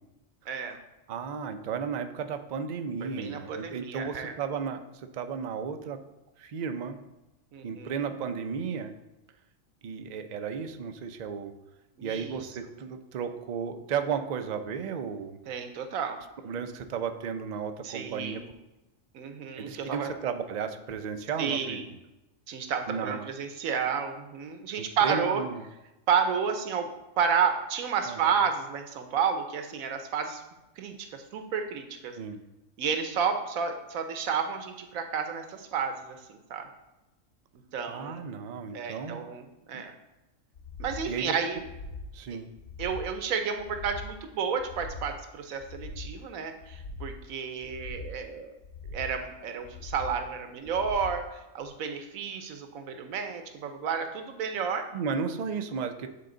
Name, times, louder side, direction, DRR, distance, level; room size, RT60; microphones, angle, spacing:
voice 1, 0.5-0.8 3.0-4.3 7.5-8.1 12.0-12.4 15.5-16.2 17.8-18.5 19.1-20.1 21.4-21.8 22.5-25.4 26.1-26.9 27.2-30.4 30.8-32.2 32.8-36.7 37.7-38.2 38.7-39.9 40.8-41.6 42.8-48.5 48.9-54.8, right 6 dB, 85° right, 6 dB, 1.2 m, -31 dB
voice 2, 1.1-6.0 6.4-7.0 7.6-8.9 9.8-11.5 12.0-15.4 16.4-18.4 19.6-21.8 22.9-23.3 24.8-25.6 28.1-28.2 32.1-32.4 37.9-39.2 39.7-39.8 41.1-41.3 42.1-42.5 54.9-56.1, right 6 dB, 70° right, 8 dB, 0.4 m, -34 dB
sound 1, 40.5-41.1 41.5-42.1 42.5-43.1 43.5-44.1 44.5-45.1 45.6-46.1 46.6-47.2 47.6-48.2 48.6-49.2 49.6-50.2 50.6-51.2 51.6-51.7, left 2 dB, 60° left, 0.5 m, -41 dB
8.4 x 3.8 x 3.8 m, 0.99 s
omnidirectional pair, 1.4 m